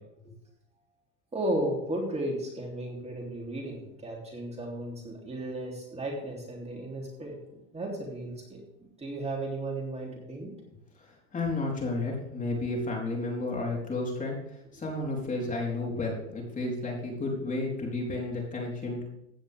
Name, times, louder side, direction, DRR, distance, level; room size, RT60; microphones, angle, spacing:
voice 1, 1.3-8.3 9.0-10.5, right 1 dB, 20° right, -1 dB, 3.3 m, -34 dB
voice 2, 11.3-19.0, left 2 dB, 20° left, -1 dB, 4.1 m, -32 dB
16.0 x 10.0 x 3.6 m, 0.83 s
supercardioid pair, 115°, 35 cm